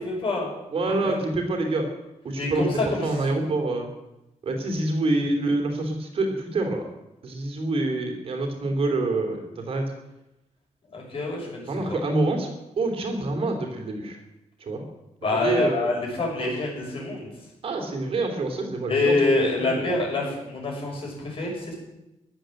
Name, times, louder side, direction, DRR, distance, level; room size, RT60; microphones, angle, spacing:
voice 1, 0.0-0.5 0.8-1.1 2.4-3.4 10.9-12.0 15.2-17.3 18.9-21.7, left 2 dB, 45° left, -1 dB, 6.2 m, -26 dB
voice 2, 0.7-1.9 2.2-2.7 3.0-3.9 4.4-6.8 7.2-9.8 11.7-12.5 12.8-14.2 14.6-14.8 15.3-15.9 16.4-16.5 17.6-19.1 19.5-19.9, right 2 dB, 50° right, 3 dB, 3.0 m, -26 dB
15.5 x 11.0 x 7.7 m, 0.94 s
wide cardioid pair, 170°, 13 cm